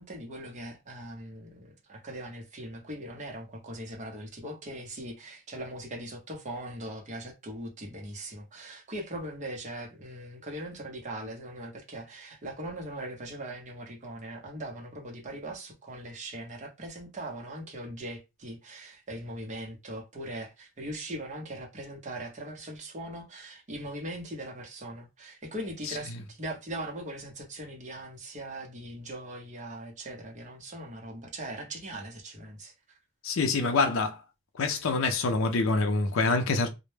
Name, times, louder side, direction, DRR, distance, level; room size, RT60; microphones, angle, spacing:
voice 1, 0.0-33.0, right 1 dB, 35° right, 0.7 m, -40 dB
voice 2, 33.2-34.2 34.6-36.7, left 3 dB, 75° left, 0.5 m, -26 dB
2.1 x 2.0 x 3.1 m
head